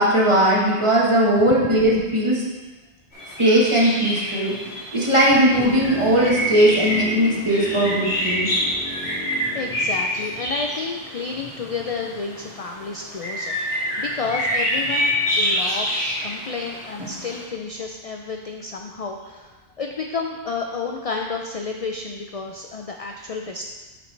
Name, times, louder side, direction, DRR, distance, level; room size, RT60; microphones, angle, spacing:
voice 1, 0.0-2.4 3.2-8.5 9.0-9.2, right 1 dB, 30° right, -5 dB, 1.4 m, -19 dB
sound 1, 3.1-17.4, equal, 85° left, 2.7 m, -27 dB
sound 2, 5.5-11.5 11.7-11.8, equal, 5° left, 1.1 m, -37 dB
voice 2, 9.5-19.5 19.8-23.6, left 4 dB, 50° left, 2 dB, 0.4 m, -31 dB
8.9 x 5.2 x 3.2 m, 1.3 s
omnidirectional pair, 1.1 m